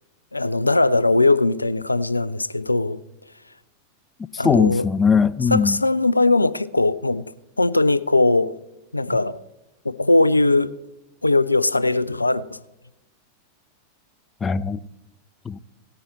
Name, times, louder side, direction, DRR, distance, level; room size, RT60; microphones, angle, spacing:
voice 1, 0.3-3.0 4.4-4.9 5.5-8.6 8.9-9.4 9.8-10.7 11.2-12.6, left 2 dB, 85° left, 0.4 m, -20 dB
voice 2, 4.3-5.8 14.4-14.8 15.4-15.6, left 5 dB, 20° left, 0.4 m, -20 dB
17.5 x 9.5 x 4.1 m
figure-of-eight pair, 90°, 0 cm